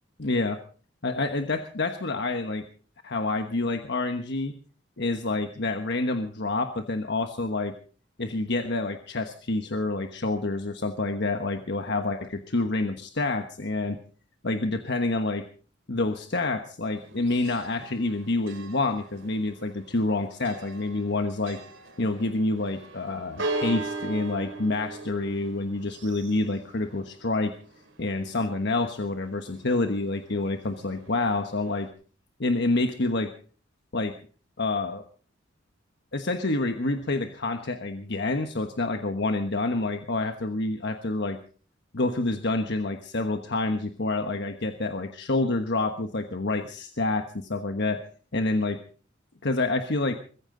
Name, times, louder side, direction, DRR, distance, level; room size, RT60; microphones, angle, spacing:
voice 1, 0.2-0.6 1.0-2.6 3.0-4.5 5.0-7.7 8.2-14.0 14.4-15.4 15.9-21.6 22.0-27.6 28.0-31.9 32.4-33.3 33.9-34.1 34.6-35.0 36.1-41.4 41.9-48.0 48.3-48.8 49.4-50.2, left 2 dB, 60° left, 6 dB, 1.3 m, -28 dB
Church bell, 16.8-31.9, right 2 dB, 70° right, 3.7 m, -40 dB
22.5 x 15.0 x 3.9 m, 0.42 s
head